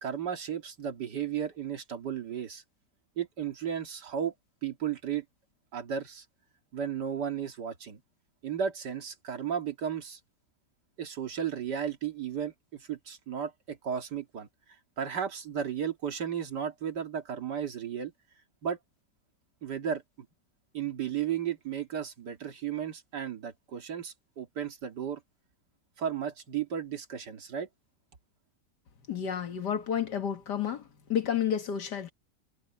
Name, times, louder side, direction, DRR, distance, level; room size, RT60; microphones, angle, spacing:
voice 1, 0.0-2.6 3.2-4.3 4.6-5.2 5.7-6.2 6.7-8.0 8.4-10.2 11.0-14.5 15.0-18.1 18.6-18.8 19.6-20.0 20.7-25.2 26.0-27.7, right 8 dB, 90° right, 2.6 m, -34 dB
voice 2, 29.1-32.1, left 8 dB, 85° left, 2.2 m, -31 dB
omnidirectional pair, 1.8 m